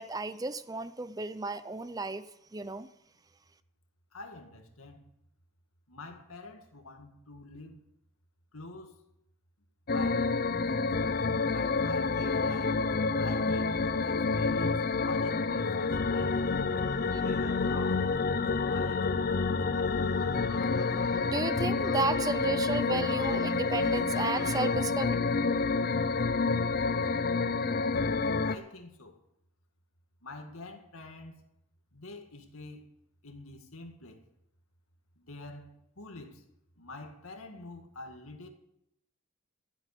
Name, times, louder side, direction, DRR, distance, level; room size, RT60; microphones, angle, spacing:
voice 1, 0.0-2.9 17.1-17.2 20.0-25.2, right 3 dB, 15° right, 0.4 m, -34 dB
voice 2, 4.1-5.0 5.9-7.8 8.5-9.0 9.9-10.3 10.7-10.9 11.5-12.8 13.2-16.4 17.2-18.1 18.4-19.2 28.4-29.2 30.2-31.4 31.9-32.9 33.2-34.2 35.2-36.5 36.8-38.5, left 2 dB, 85° left, 2.1 m, -46 dB
sound 1, 9.9-28.5, left 4 dB, 45° left, 0.5 m, -28 dB
13.5 x 8.0 x 8.3 m
head